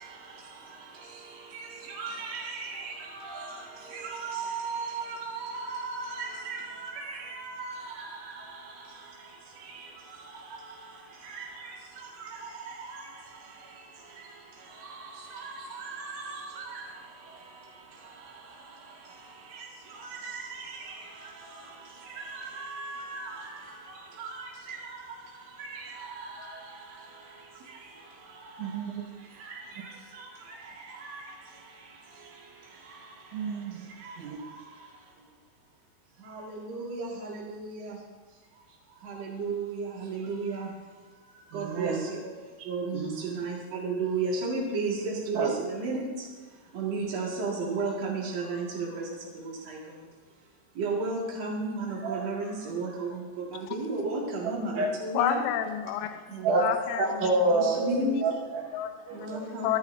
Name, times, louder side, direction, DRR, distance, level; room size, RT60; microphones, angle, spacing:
voice 1, 1.9-2.9 3.2-3.5 3.9-7.7 11.3-11.5 15.4-16.4 20.0-20.8 22.3-23.3 24.2-24.3 25.6-25.7 31.0-31.2 36.3-37.7 39.4-40.7 41.5-42.2 42.7-43.0 43.3-46.0 46.8-48.7 49.7-49.8 50.8-53.1 53.7-54.7 55.0-55.4 57.5-58.1 59.2-59.8, right 3 dB, 55° right, -4 dB, 1.9 m, -33 dB
voice 2, 28.6-28.9 33.3-33.9 34.2-34.4 41.5-42.0 42.9-43.2 45.4-45.5 52.0-52.2 54.8-54.9 56.4-56.6 57.0-58.6 59.1-59.2, right 3 dB, 70° right, -4 dB, 3.6 m, -28 dB
voice 3, 55.1-56.2 56.6-57.0 58.0-58.2 58.7-58.9 59.6-59.8, left 10 dB, 80° left, 7 dB, 3.0 m, -29 dB
27.5 x 9.7 x 2.7 m, 1.4 s
omnidirectional pair, 6.0 m